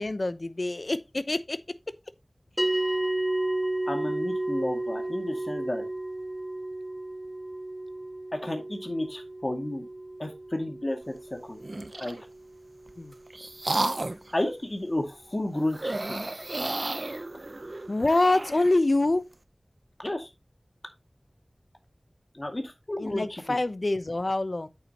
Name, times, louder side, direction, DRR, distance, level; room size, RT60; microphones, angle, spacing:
voice 1, 0.0-1.6 13.0-13.1 17.9-19.2 23.0-24.7, left 2 dB, 60° left, 0.8 m, -25 dB
sound 1, 2.6-13.1, right 2 dB, ahead, 2.2 m, -33 dB
voice 2, 3.9-5.8 8.3-9.9 10.2-11.1 11.4-11.6 12.0-12.2 14.3-16.2 20.0-20.3 22.3-23.6, left 1 dB, 40° left, 2.1 m, -32 dB
sound 2, 11.6-12.2 12.9-14.3 15.7-18.7, right 2 dB, 60° right, 0.7 m, -32 dB
8.7 x 7.1 x 2.9 m
wide cardioid pair, 50°, 0 cm